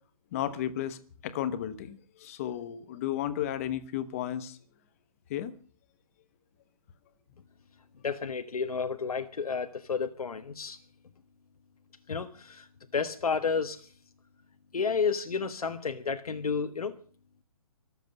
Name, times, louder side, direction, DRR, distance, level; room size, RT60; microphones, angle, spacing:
voice 1, 0.3-4.6 5.3-5.5, left 11 dB, 25° left, 1.1 m, -33 dB
voice 2, 8.0-10.8 12.1-12.7 12.9-13.9 14.7-17.0, left 5 dB, 85° left, 1.5 m, -31 dB
24.0 x 8.1 x 6.6 m
hypercardioid pair, 165°, 18 cm